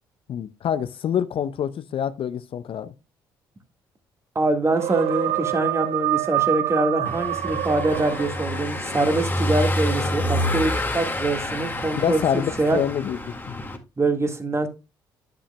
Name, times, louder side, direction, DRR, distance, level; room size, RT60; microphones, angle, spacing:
voice 1, 0.3-2.9 11.9-13.2 13.5-13.6, left 9 dB, 50° left, 0.7 m, -26 dB
voice 2, 4.3-12.8 14.0-14.7, right 2 dB, 25° right, 1.7 m, -24 dB
sound 1, 4.7-8.8, right 15 dB, 60° right, 0.6 m, -26 dB
Car passing by / Engine, 7.0-13.8, left 1 dB, 20° left, 1.9 m, -28 dB
9.7 x 8.9 x 2.2 m
hypercardioid pair, 50°, 12 cm